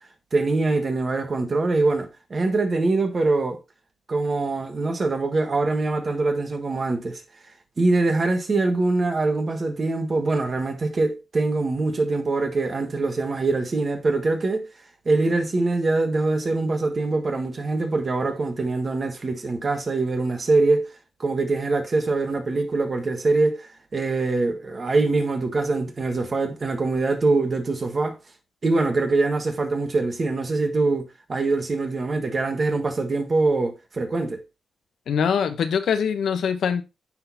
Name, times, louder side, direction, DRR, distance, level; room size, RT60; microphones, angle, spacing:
voice 1, 0.3-3.6 4.1-7.2 7.8-14.7 15.0-20.9 21.2-28.2 28.6-34.4, right 3 dB, 45° right, 1.4 m, -23 dB
voice 2, 35.1-36.8, left 7 dB, 75° left, 0.8 m, -23 dB
10.5 x 4.0 x 2.7 m
supercardioid pair, 40°, 0 cm